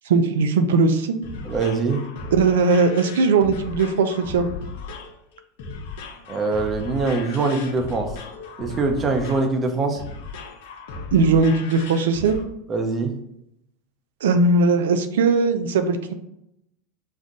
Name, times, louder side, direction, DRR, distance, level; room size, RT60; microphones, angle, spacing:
voice 1, 0.1-1.2 2.3-4.5 11.1-12.4 14.2-16.1, right 4 dB, 80° right, 8 dB, 0.5 m, -19 dB
sound 1, 0.9-12.4, left 4 dB, 70° left, 0.8 m, -36 dB
voice 2, 1.4-2.0 6.3-8.1 8.6-10.0 12.7-13.1, right 3 dB, 30° right, 4 dB, 0.9 m, -23 dB
5.4 x 2.4 x 4.0 m, 0.81 s
hypercardioid pair, 95°, 0 cm